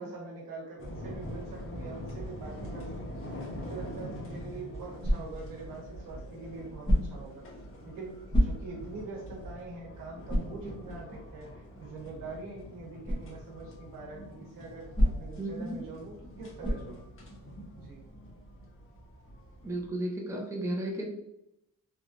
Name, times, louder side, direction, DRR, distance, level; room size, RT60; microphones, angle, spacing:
voice 1, 0.0-7.4 7.8-8.1 8.4-17.1 17.8-18.0, right 3 dB, 80° right, -1 dB, 1.0 m, -44 dB
sound 1, 0.8-19.9, equal, 40° left, 0.9 m, -44 dB
sound 2, 5.0-5.5 6.8-7.3 8.3-8.9 9.4-9.5 10.3-10.6 13.0-13.3 14.9-15.4 16.6-17.0, equal, 15° left, 0.8 m, -27 dB
voice 2, 15.4-15.8 19.6-21.0, right 1 dB, 10° right, 0 dB, 0.5 m, -33 dB
3.1 x 2.3 x 2.5 m, 0.83 s
cardioid pair, 100°, 32 cm